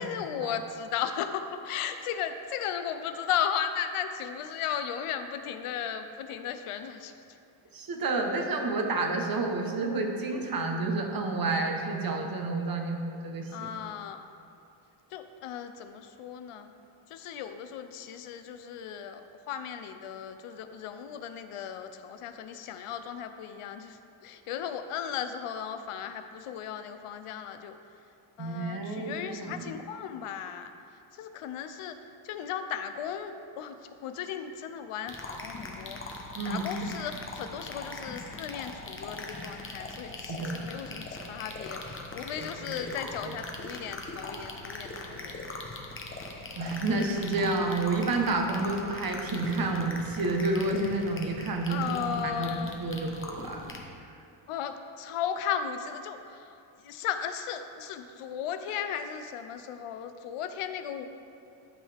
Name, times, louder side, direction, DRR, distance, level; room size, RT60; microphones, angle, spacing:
voice 1, 0.0-7.1 13.5-14.2 15.1-16.7 17.1-27.7 28.4-30.7 31.2-32.0 32.2-33.8 34.0-36.0 36.5-45.6 51.7-52.8 54.5-56.6 56.8-61.0, left 8 dB, 90° left, 9 dB, 0.7 m, -36 dB
voice 2, 7.7-13.7 28.4-29.7 36.4-36.7 40.3-40.6 42.7-42.8 43.2-43.3 46.6-53.8, right 3 dB, 45° right, 2 dB, 1.1 m, -30 dB
sound 1, 35.1-53.8, left 2 dB, 25° left, 0.9 m, -41 dB
12.5 x 5.5 x 3.4 m, 2.6 s
cardioid pair, 120°, 50 cm